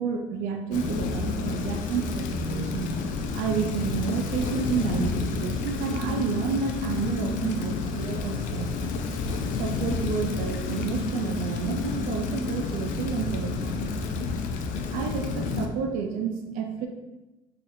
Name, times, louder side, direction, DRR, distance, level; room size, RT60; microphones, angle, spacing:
voice 1, 0.0-2.9 3.3-8.8 9.6-13.9 14.9-16.9, right 6 dB, 80° right, 4 dB, 0.4 m, -30 dB
Rain, 0.7-15.7, left 4 dB, 70° left, 0.4 m, -30 dB
4.2 x 2.4 x 2.6 m, 1.0 s
cardioid pair, 100°, 14 cm